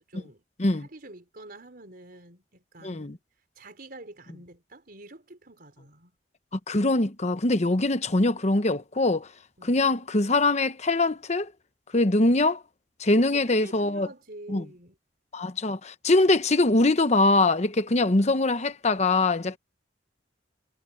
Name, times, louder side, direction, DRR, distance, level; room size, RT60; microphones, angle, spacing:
voice 1, 0.0-0.4 0.7-3.2 3.6-6.1 9.6-9.8 13.3-14.9 19.5-19.6, right 2 dB, 55° right, 4.5 m, -47 dB
voice 2, 2.8-3.2 6.7-9.3 9.6-11.5 11.9-12.6 13.0-14.1 14.5-14.6 15.3-19.6, left 2 dB, 40° left, 1.0 m, -23 dB
head